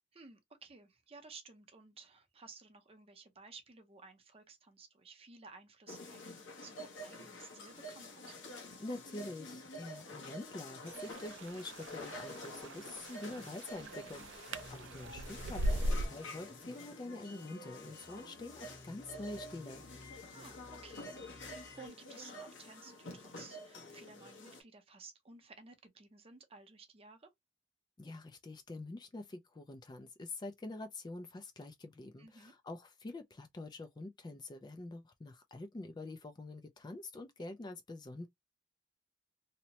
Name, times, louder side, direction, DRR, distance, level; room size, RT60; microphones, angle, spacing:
voice 1, 0.1-8.4 13.8-14.3 20.2-27.3 32.2-32.5, right 4 dB, 30° right, 0.6 m, -56 dB
sound 1, 5.9-24.6, left 1 dB, 85° left, 1.0 m, -49 dB
voice 2, 8.8-19.8 28.0-38.3, left 2 dB, 20° left, 0.3 m, -46 dB
sound 2, 10.9-16.1, equal, 75° right, 0.4 m, -39 dB
sound 3, 14.5-21.9, left 2 dB, 55° left, 0.8 m, -56 dB
2.8 x 2.1 x 2.7 m
head